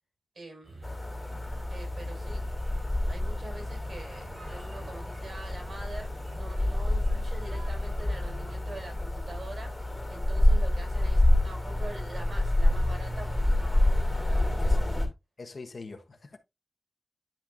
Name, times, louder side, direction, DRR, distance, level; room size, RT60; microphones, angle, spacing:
voice 1, 0.3-0.9 1.7-2.4 3.1-9.8 10.1-13.9 14.1-14.8, right 2 dB, 70° right, 5.5 m, -45 dB
sound 1, 0.6-9.1, right 2 dB, 85° right, 4.0 m, -49 dB
sound 2, 0.8-15.1, left 1 dB, 10° left, 2.5 m, -27 dB
voice 2, 15.4-16.4, left 3 dB, 55° left, 1.2 m, -43 dB
10.5 x 5.9 x 2.6 m
wide cardioid pair, 85°, 0 cm